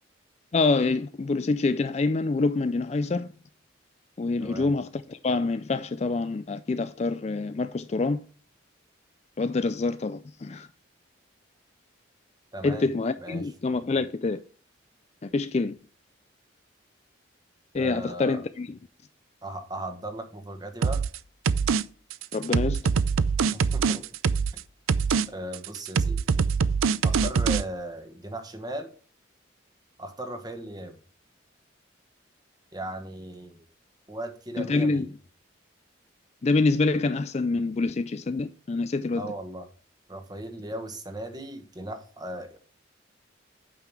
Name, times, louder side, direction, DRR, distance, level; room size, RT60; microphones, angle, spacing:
voice 1, 0.5-3.3 4.2-8.2 9.4-10.7 12.6-14.4 15.2-15.8 17.7-18.8 22.3-22.8 34.6-35.1 36.4-39.3, left 3 dB, 30° left, 0.3 m, -26 dB
voice 2, 4.4-4.7 12.5-12.9 13.2-13.5 17.7-18.4 19.4-21.0 23.5-24.1 25.3-26.2 27.0-28.9 30.0-31.0 32.7-33.6 34.1-35.1 39.2-39.7 40.1-42.6, right 1 dB, 20° right, 1.2 m, -37 dB
sound 1, 20.8-21.2 21.5-21.8 22.1-24.6 24.9-25.3 25.5-27.6, right 5 dB, 90° right, 0.5 m, -23 dB
8.9 x 5.8 x 4.6 m
head